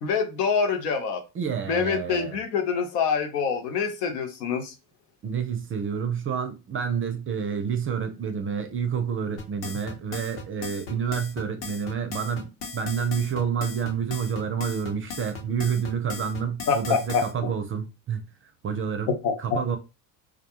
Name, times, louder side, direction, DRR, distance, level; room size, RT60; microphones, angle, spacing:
voice 1, 0.0-1.2 1.7-4.7 16.7-17.5 19.2-19.3, left 6 dB, 85° left, 0.8 m, -25 dB
voice 2, 1.3-2.4 5.2-19.1 19.4-19.8, right 7 dB, 30° right, 0.4 m, -29 dB
sound 1, 9.4-17.3, left 4 dB, 60° left, 1.0 m, -37 dB
2.4 x 2.2 x 2.8 m
hypercardioid pair, 80°, 48 cm